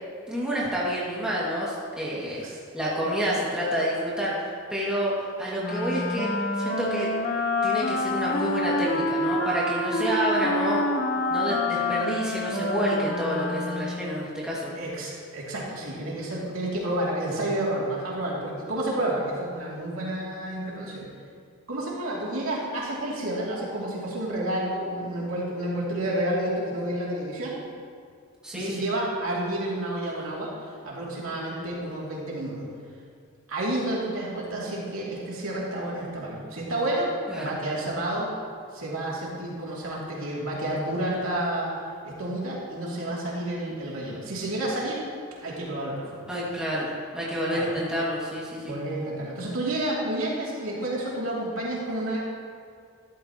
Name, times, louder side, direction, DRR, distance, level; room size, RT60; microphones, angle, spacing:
voice 1, 0.3-2.4 2.7-5.1 5.4-7.1 7.6-10.8 11.3-14.7 28.4-28.8 37.3-37.5 46.3-48.7, equal, 5° right, -7 dB, 2.1 m, -28 dB
voice 2, 2.3-2.6 14.7-21.1 21.7-27.6 28.5-32.6 33.5-37.1 37.4-38.3 38.7-41.7 42.0-45.0 45.4-46.3 47.5-47.7 48.6-52.2, right 1 dB, 75° right, -5 dB, 2.8 m, -30 dB
Wind instrument woodwind instrument, 5.6-14.1, left 2 dB, 45° left, 0.8 m, -27 dB
13.0 x 12.0 x 3.0 m, 2.2 s
head